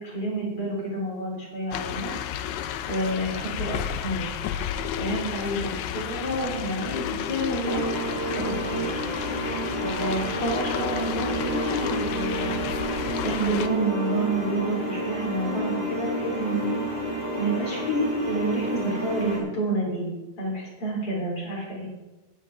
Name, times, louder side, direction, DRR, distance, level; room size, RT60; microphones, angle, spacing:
voice 1, 0.0-2.1 2.9-4.3 5.0-7.9 8.4-8.8 9.8-12.7 13.2-16.8 17.4-21.9, right 2 dB, 45° left, -3 dB, 4.5 m, -29 dB
sound 1, 1.7-13.7, left 9 dB, 75° left, 1.9 m, -32 dB
sound 2, 7.6-19.4, equal, 20° right, 4.3 m, -30 dB
18.0 x 9.9 x 3.6 m, 1.1 s
omnidirectional pair, 3.5 m